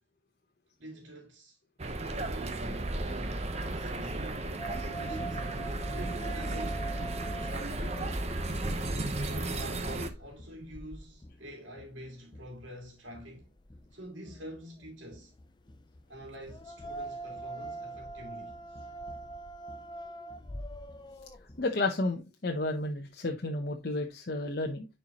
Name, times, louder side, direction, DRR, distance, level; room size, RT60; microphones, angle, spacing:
voice 1, 0.8-1.6 2.1-5.5 5.9-7.0 7.3-8.1 9.2-13.5 13.9-15.3 16.1-18.9, equal, 75° right, 2.4 m, -47 dB
sound 1, 1.8-10.1, right 2 dB, 35° right, 0.9 m, -34 dB
sound 2, 4.6-21.7, right 2 dB, 25° left, 0.5 m, -44 dB
voice 2, 21.6-24.9, left 2 dB, 55° left, 0.8 m, -32 dB
10.5 x 4.5 x 3.0 m
head